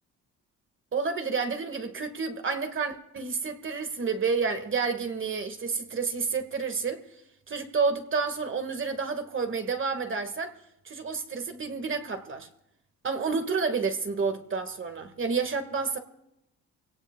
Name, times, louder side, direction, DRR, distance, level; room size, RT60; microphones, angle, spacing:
voice 1, 0.9-7.0 7.5-10.5 10.9-12.5 13.0-16.0, right 5 dB, 40° right, 7 dB, 1.7 m, -30 dB
25.5 x 17.5 x 2.3 m, 0.85 s
cardioid pair, 90°, 30 cm